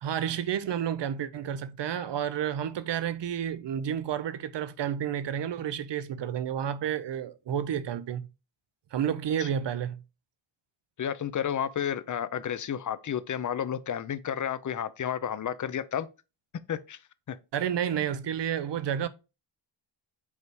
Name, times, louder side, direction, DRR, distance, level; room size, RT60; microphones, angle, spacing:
voice 1, 0.0-8.2 8.9-10.0 17.5-19.1, right 9 dB, 55° right, 0.7 m, -30 dB
voice 2, 11.0-16.1 16.7-17.0 17.3-17.4, left 9 dB, 40° left, 0.5 m, -31 dB
5.5 x 4.7 x 4.7 m
wide cardioid pair, 135°, 50 cm